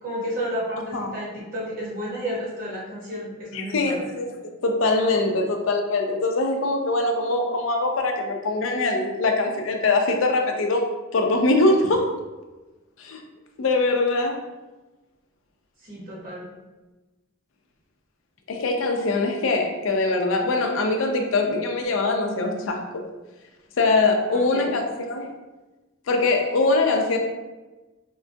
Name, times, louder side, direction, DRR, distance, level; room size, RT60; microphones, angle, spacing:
voice 1, 0.0-4.1 15.8-16.5 24.3-24.7, equal, 45° right, -5 dB, 1.0 m, -32 dB
voice 2, 3.5-4.4 4.6-12.1 13.0-13.2 13.6-14.4 18.5-23.0 23.8-25.3 26.1-27.2, left 2 dB, 75° left, 3 dB, 0.5 m, -22 dB
3.7 x 2.2 x 2.6 m, 1.2 s
head